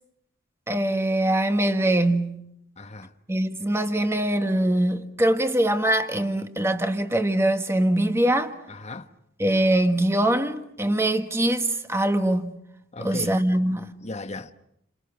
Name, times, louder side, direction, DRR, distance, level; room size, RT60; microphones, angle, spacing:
voice 1, 0.7-2.4 3.3-8.5 9.4-12.5 13.0-13.9, right 1 dB, 15° right, 1.4 m, -23 dB
voice 2, 2.8-3.1 8.7-9.1 12.9-13.4 14.0-14.5, left 2 dB, 35° left, 1.2 m, -36 dB
30.0 x 27.0 x 6.0 m
head